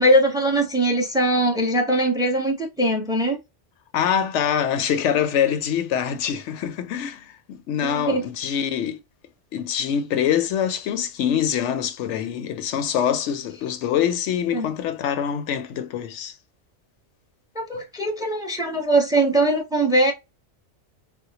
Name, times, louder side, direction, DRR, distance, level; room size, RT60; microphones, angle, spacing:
voice 1, 0.0-3.4 7.8-8.2 14.5-14.7 17.5-20.1, right 1 dB, 5° right, 0.7 m, -21 dB
voice 2, 3.9-9.0 9.5-16.4, left 9 dB, 80° left, 0.9 m, -24 dB
4.3 x 2.0 x 2.8 m
omnidirectional pair, 1.2 m